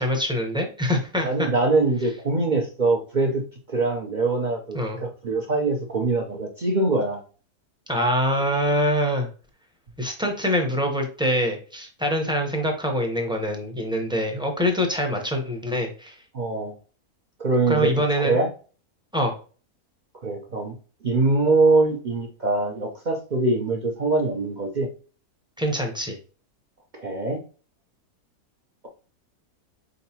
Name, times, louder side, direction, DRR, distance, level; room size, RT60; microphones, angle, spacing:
voice 1, 0.0-1.5 4.7-5.0 7.9-9.3 10.0-16.2 17.7-18.4 19.1-19.4 25.6-26.2, equal, 5° right, 2 dB, 0.5 m, -24 dB
voice 2, 1.2-7.2 16.3-16.7 17.4-18.5 20.2-20.8 21.0-24.9 26.9-27.4, right 3 dB, 50° right, 1 dB, 0.5 m, -23 dB
4.4 x 3.8 x 2.8 m, 0.37 s
omnidirectional pair, 1.6 m